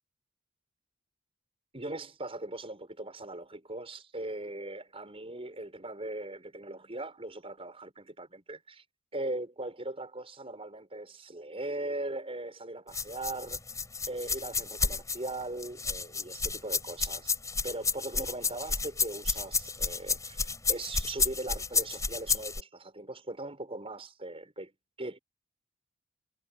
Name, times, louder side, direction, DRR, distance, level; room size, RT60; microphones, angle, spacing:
voice 1, 1.7-8.8 9.1-13.6 14.1-17.4 17.6-24.7 25.0-25.2, right 2 dB, 30° right, 5.8 m, -39 dB
sound 1, 12.9-22.6, left 4 dB, 15° left, 5.0 m, -31 dB
head